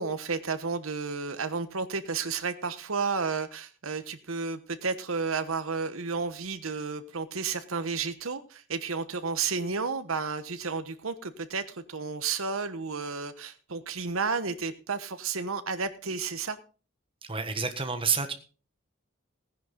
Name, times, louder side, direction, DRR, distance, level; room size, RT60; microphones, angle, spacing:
voice 1, 0.0-16.6, right 4 dB, 80° right, 11 dB, 1.1 m, -32 dB
voice 2, 17.3-18.3, right 5 dB, 25° right, 8 dB, 1.4 m, -28 dB
16.5 x 10.0 x 3.8 m, 0.37 s
head